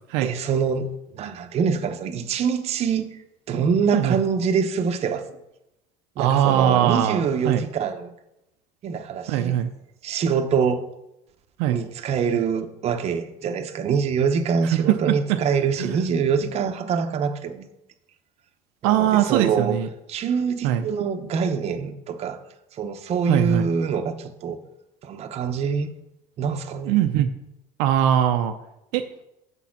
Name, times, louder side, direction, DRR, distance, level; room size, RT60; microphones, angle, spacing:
voice 1, 0.2-0.9 1.1-3.2 3.5-5.4 6.2-8.1 8.8-9.6 10.0-10.9 11.7-17.7 18.8-19.8 20.1-22.4 22.7-24.6 25.0-25.9 26.4-27.0, right 6 dB, 40° right, 7 dB, 0.7 m, -25 dB
voice 2, 6.2-7.6 9.3-9.7 11.6-11.8 14.7-15.0 15.3-15.4 15.8-16.0 18.8-19.9 20.6-20.9 23.3-23.7 26.9-27.3 27.8-28.5 28.9-29.0, right 11 dB, 75° right, 7 dB, 0.5 m, -21 dB
7.1 x 4.2 x 5.7 m, 0.87 s
supercardioid pair, 110°, 16 cm